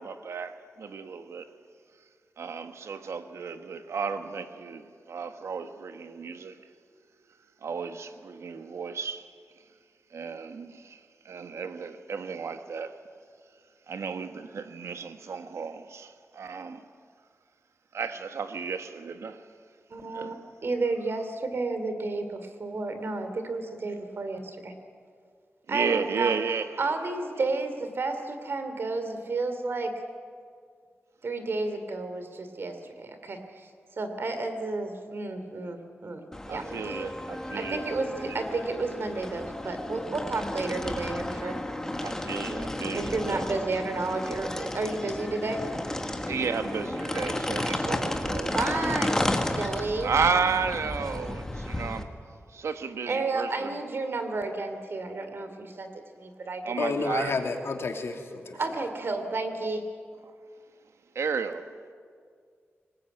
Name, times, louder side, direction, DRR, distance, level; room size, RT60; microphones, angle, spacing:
voice 1, 0.0-1.5 2.4-6.6 7.6-9.2 10.1-11.0 11.2-13.0 13.9-16.8 17.9-19.4 20.1-20.3 25.7-26.7 36.5-37.8 38.3-38.4 42.0-43.4 46.3-48.6 50.0-52.1 52.5-53.8 56.6-57.4 61.1-61.7, right 5 dB, 90° right, 1.3 m, -33 dB
voice 2, 19.9-20.4 20.6-24.7 25.7-26.3 26.8-30.0 31.2-33.7 34.0-36.2 36.5-37.0 37.5-41.6 42.9-45.7 47.7-47.9 48.5-50.1 53.1-56.9 58.6-59.9, right 3 dB, 55° right, 2.8 m, -32 dB
sound 1, 36.3-52.0, left 1 dB, 10° left, 1.7 m, -33 dB
voice 3, 56.8-58.6, left 4 dB, 65° left, 2.6 m, -30 dB
24.5 x 20.0 x 9.2 m
wide cardioid pair, 155°, 5 cm